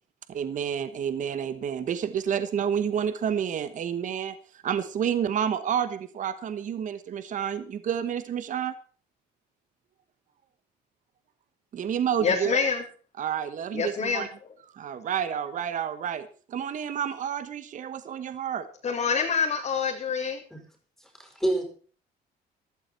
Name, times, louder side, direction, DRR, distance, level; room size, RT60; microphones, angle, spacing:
voice 1, 0.3-8.7 11.7-12.6 13.2-14.3 14.7-18.7, right 8 dB, 50° right, 12 dB, 1.2 m, -29 dB
voice 2, 12.2-12.8 13.7-14.3 18.8-20.4, left 5 dB, 45° left, -2 dB, 3.3 m, -26 dB
voice 3, 21.0-21.6, right 1 dB, ahead, 3 dB, 5.2 m, -28 dB
15.0 x 13.0 x 4.4 m, 0.41 s
cardioid pair, 110°, 17 cm